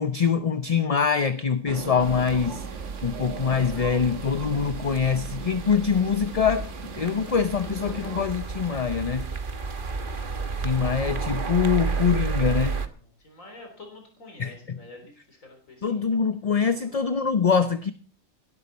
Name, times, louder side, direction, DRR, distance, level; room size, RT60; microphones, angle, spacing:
voice 1, 0.0-2.7 3.0-6.7 7.0-9.3 10.6-12.8 14.4-14.8 15.8-17.9, left 6 dB, 35° left, 11 dB, 0.6 m, -24 dB
sound 1, 1.7-8.3, right 5 dB, 65° right, 1.5 m, -39 dB
sound 2, 2.0-12.9, right 5 dB, 40° right, 1.3 m, -32 dB
voice 2, 13.2-16.0 16.7-17.0, left 2 dB, 90° left, 3 dB, 4.2 m, -47 dB
17.5 x 12.0 x 4.2 m, 0.39 s
omnidirectional pair, 1.3 m